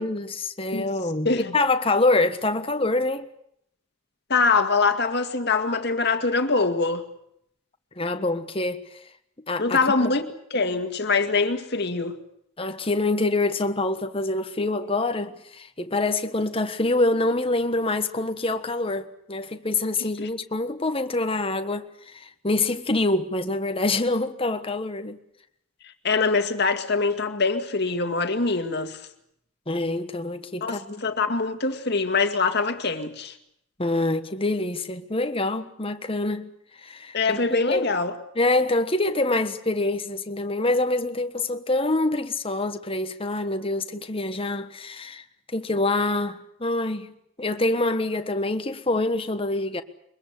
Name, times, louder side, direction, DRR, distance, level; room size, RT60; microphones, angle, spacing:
voice 1, 0.0-3.3 8.0-8.8 9.5-10.1 12.6-25.2 29.7-31.0 33.8-36.5 36.8-37.8 38.3-45.2 45.5-47.1 47.4-49.8, left 2 dB, 25° left, 1.4 m, -25 dB
voice 2, 1.2-1.6 4.3-7.0 9.6-10.2 10.5-12.2 26.0-29.0 30.6-33.3 37.1-38.1, left 4 dB, 55° left, 2.1 m, -23 dB
23.0 x 22.0 x 8.3 m
head